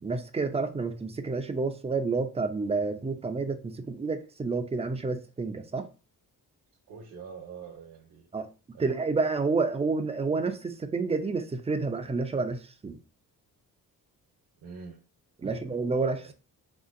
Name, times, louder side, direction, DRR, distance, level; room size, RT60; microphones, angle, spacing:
voice 1, 0.0-5.9 8.3-8.5 8.8-13.0 15.4-16.3, right 4 dB, 15° right, 0.4 m, -29 dB
voice 2, 6.9-8.3 8.7-8.9 14.6-15.0 15.4-16.3, right 5 dB, 65° right, 0.8 m, -45 dB
3.5 x 2.6 x 2.4 m
cardioid pair, 80°, 38 cm